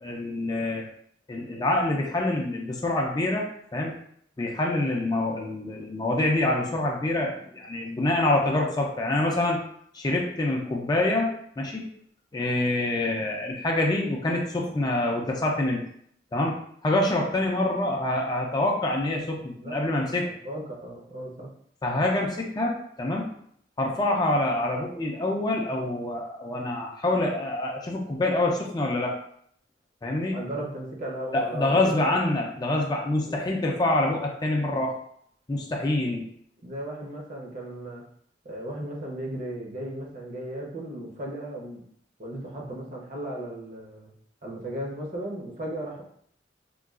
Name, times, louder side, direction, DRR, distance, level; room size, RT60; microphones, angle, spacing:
voice 1, 0.0-0.8 1.3-3.5 3.7-3.9 4.4-9.6 9.9-11.3 11.6-11.8 12.3-15.8 16.3-16.6 16.8-20.3 21.8-23.3 23.8-29.1 30.0-30.4 31.3-34.9 35.5-36.3, left 2 dB, 25° left, 0 dB, 0.4 m, -26 dB
voice 2, 20.4-21.5 30.3-32.0 33.2-33.5 36.0-36.1 36.6-38.1 38.4-41.9 42.2-44.1 44.4-46.0, right 1 dB, 45° right, -2 dB, 0.7 m, -36 dB
3.7 x 2.3 x 2.3 m, 0.66 s
head